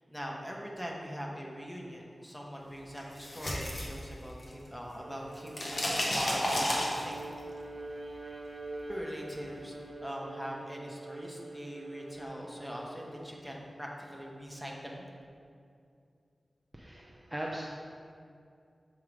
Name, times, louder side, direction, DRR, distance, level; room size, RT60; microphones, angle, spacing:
voice 1, 0.1-7.2 8.9-15.0, equal, 10° left, -2 dB, 1.2 m, -42 dB
sound 1, 3.0-4.7 4.9-7.4, left 1 dB, 60° left, 1.2 m, -32 dB
Bowed string instrument, 4.9-13.3, right 2 dB, 60° right, 0.6 m, -45 dB
voice 2, 16.7-17.6, right 1 dB, 15° right, -3 dB, 0.7 m, -39 dB
7.3 x 3.8 x 4.9 m, 2.4 s
cardioid pair, 45°, 0 cm